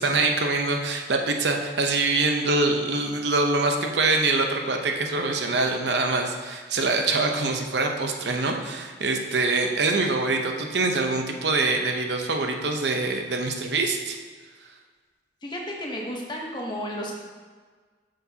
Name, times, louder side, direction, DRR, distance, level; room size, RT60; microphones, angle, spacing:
voice 1, 0.0-14.2, right 3 dB, 80° right, 3 dB, 0.8 m, -24 dB
voice 2, 15.4-17.2, equal, 25° left, -1 dB, 1.0 m, -32 dB
8.2 x 6.5 x 2.8 m, 1.5 s
head